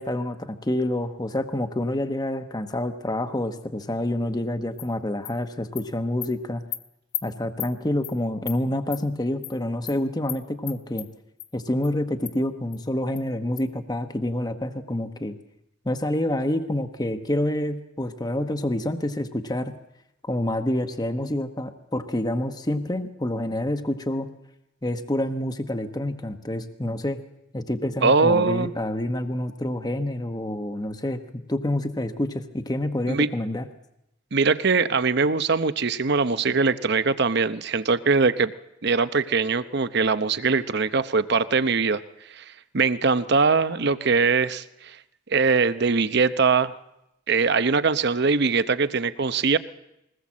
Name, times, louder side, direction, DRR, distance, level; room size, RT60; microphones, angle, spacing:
voice 1, 0.0-6.6 7.2-11.1 11.5-15.4 15.8-19.7 20.2-24.3 24.8-27.2 27.5-33.7, left 1 dB, 20° left, 8 dB, 1.0 m, -27 dB
Animal, 4.8-4.9 5.2-5.3 5.8-5.9 6.2-6.3 6.7-6.8 7.1-7.2 7.6-7.7 8.0-8.1 8.5-8.6 8.9-9.0 9.4-9.5 9.9-10.0 10.3-10.4 10.7-11.1 11.4-11.5 11.8-11.9 12.2-12.3 12.7-12.8 13.2-13.3 13.6-13.7, left 13 dB, 55° left, 1.3 m, -33 dB
voice 2, 28.0-28.7 33.1-33.3 34.3-38.5 38.8-42.0 42.3-42.4 42.7-45.0 45.3-46.7 47.3-49.6, right 4 dB, 55° right, 13 dB, 0.8 m, -22 dB
22.0 x 19.0 x 7.4 m, 0.87 s
head